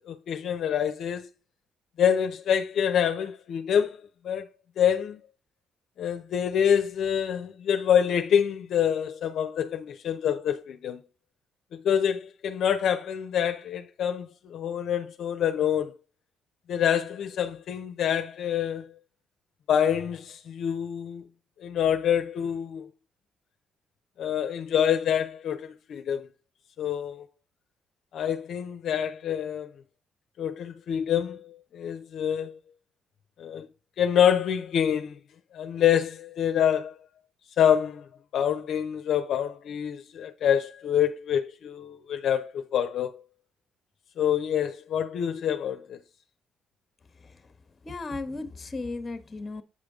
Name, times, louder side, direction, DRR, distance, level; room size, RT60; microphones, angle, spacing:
voice 1, 0.1-1.3 2.0-4.0 4.2-4.5 4.8-5.2 6.0-11.0 11.7-15.9 16.7-18.9 19.7-21.3 21.6-22.9 24.2-26.3 26.8-27.3 28.1-29.7 30.4-32.6 33.4-33.7 34.0-35.2 35.5-37.0 37.6-38.1 38.3-43.2 44.2-46.0, left 9 dB, 70° left, 0.6 m, -26 dB
voice 2, 47.2-47.5 47.8-49.6, left 3 dB, 35° left, 1.0 m, -36 dB
8.5 x 5.0 x 3.6 m
cardioid pair, 90°, 0 cm